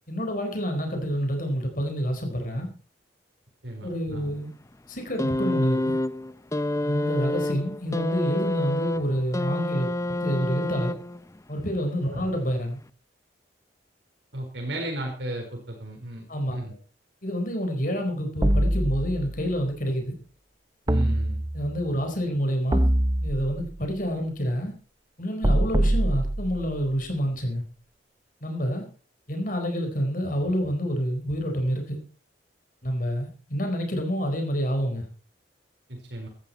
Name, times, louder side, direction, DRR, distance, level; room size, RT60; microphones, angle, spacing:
voice 1, 0.1-2.7 3.8-4.5 4.9-6.0 6.8-9.9 10.2-10.9 11.5-12.8 16.3-16.6 17.2-20.2 21.5-22.9 23.2-24.7 25.2-27.6 28.4-28.9 29.3-32.0 32.8-35.1, equal, 50° left, 4 dB, 4.5 m, -28 dB
voice 2, 3.6-4.3 12.1-12.3 14.3-16.7 20.9-21.4 35.9-36.3, right 1 dB, 70° right, 1 dB, 4.5 m, -35 dB
sound 1, 5.2-11.4 12.4-12.5, left 1 dB, 15° left, 0.6 m, -28 dB
sound 2, 18.4-19.5 20.9-21.8 22.7-23.8 25.4-26.9, right 1 dB, 20° right, 0.8 m, -24 dB
17.5 x 13.5 x 4.3 m, 0.40 s
head